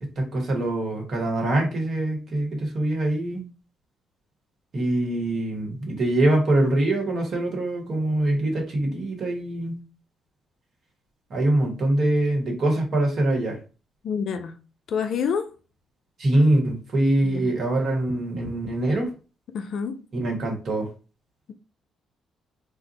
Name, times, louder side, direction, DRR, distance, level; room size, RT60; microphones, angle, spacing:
voice 1, 0.0-3.4 4.7-9.8 11.3-13.6 16.2-19.1 20.1-20.9, right 1 dB, 50° right, 1.1 m, -24 dB
voice 2, 14.0-14.6 14.9-15.5 17.2-17.5 19.5-20.0, left 6 dB, 60° left, 0.3 m, -28 dB
2.5 x 2.1 x 3.9 m
hypercardioid pair, 45°, 0 cm